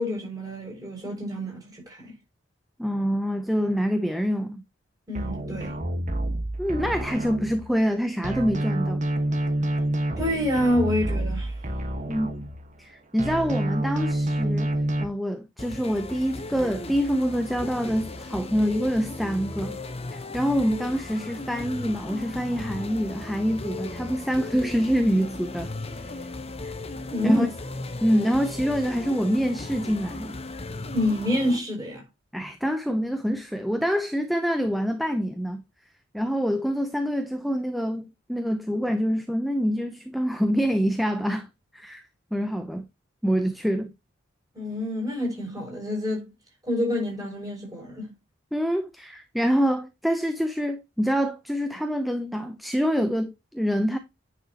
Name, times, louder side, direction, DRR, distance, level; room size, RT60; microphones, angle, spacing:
voice 1, 0.0-2.1 5.1-5.8 10.2-11.5 27.1-27.4 30.9-32.0 44.5-46.3 46.6-48.1, left 1 dB, 20° right, 6.3 m, -27 dB
voice 2, 2.8-4.6 6.6-9.0 12.1-12.3 12.8-14.7 15.0-19.8 20.1-25.7 26.6-26.7 27.2-27.5 28.0-30.4 32.3-35.6 36.1-41.5 41.7-42.0 42.3-42.9 43.2-43.9 48.5-54.0, equal, ahead, 0.7 m, -26 dB
sound 1, 5.1-7.9 8.2-12.9 13.2-15.0, right 1 dB, 40° right, 1.5 m, -28 dB
sound 2, 15.6-31.6, left 2 dB, 30° left, 1.1 m, -36 dB
9.7 x 6.2 x 3.0 m
head